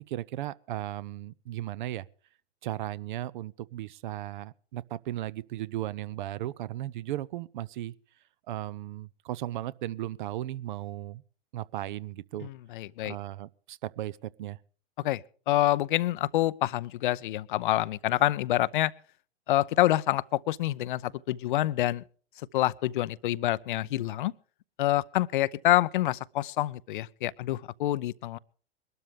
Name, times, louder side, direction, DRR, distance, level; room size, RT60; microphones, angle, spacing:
voice 1, 0.0-2.1 2.6-7.9 8.5-11.2 11.5-12.5 13.0-14.6, right 14 dB, 50° right, 0.6 m, -36 dB
voice 2, 12.4-13.1 15.0-18.9 19.5-22.0 22.5-24.3 24.8-28.4, left 15 dB, 50° left, 0.6 m, -27 dB
22.5 x 12.5 x 3.3 m
figure-of-eight pair, 105°, 33 cm